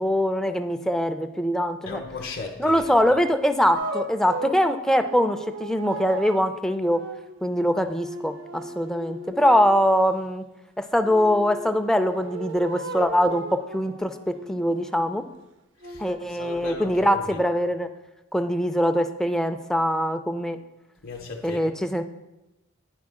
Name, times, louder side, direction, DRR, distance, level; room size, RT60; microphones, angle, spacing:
voice 1, 0.0-2.0 2.6-7.0 7.4-10.4 10.8-15.2 16.0-17.9 18.3-20.6 21.4-22.0, equal, 5° left, 7 dB, 0.3 m, -23 dB
voice 2, 1.8-2.9 15.8-16.0 16.4-17.4 21.0-21.6, left 4 dB, 55° left, 0 dB, 0.7 m, -36 dB
sound 1, 3.7-9.8 11.0-15.3 15.8-17.7, right 2 dB, 65° right, 0.5 m, -37 dB
9.7 x 4.4 x 3.6 m, 0.98 s
head